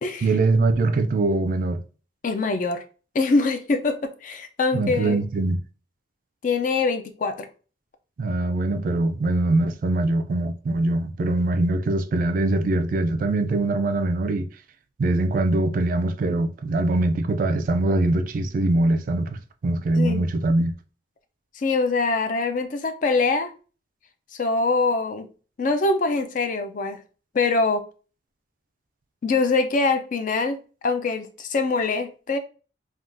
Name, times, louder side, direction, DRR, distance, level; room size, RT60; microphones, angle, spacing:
voice 1, 0.2-1.8 4.7-5.6 8.2-14.5 15.0-20.7, right 2 dB, 50° right, 0.3 m, -22 dB
voice 2, 2.2-2.8 3.1-5.2 6.4-7.5 20.0-20.3 21.6-23.5 24.4-25.3 25.6-27.0 27.3-27.9 29.2-30.6 30.8-32.4, left 3 dB, 45° left, 0.4 m, -23 dB
3.5 x 2.3 x 2.5 m
head